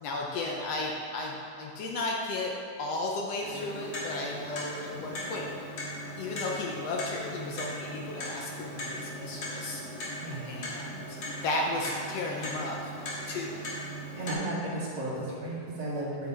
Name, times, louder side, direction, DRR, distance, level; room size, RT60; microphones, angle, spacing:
voice 1, 0.0-2.5 2.8-5.5 6.2-9.8 10.5-12.9 13.3-13.7, left 2 dB, 70° left, -1 dB, 1.7 m, -34 dB
Clock, 3.4-14.3, equal, 50° left, 2.3 m, -39 dB
voice 2, 14.2-16.3, right 1 dB, 65° right, -7 dB, 3.2 m, -34 dB
9.0 x 8.5 x 4.0 m, 2.5 s
omnidirectional pair, 3.3 m